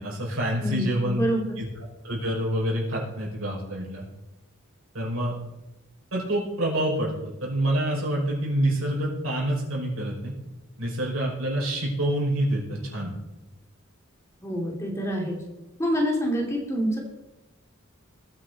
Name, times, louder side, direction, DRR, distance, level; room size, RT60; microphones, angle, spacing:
voice 1, 0.0-1.2 1.6-1.7 2.0-4.0 4.9-5.3 6.1-10.3 10.8-13.1, right 1 dB, 85° right, -3 dB, 5.9 m, -27 dB
voice 2, 0.6-1.6 14.4-15.4 15.8-17.0, equal, 15° left, 0 dB, 2.8 m, -26 dB
20.5 x 9.8 x 4.2 m, 0.99 s
head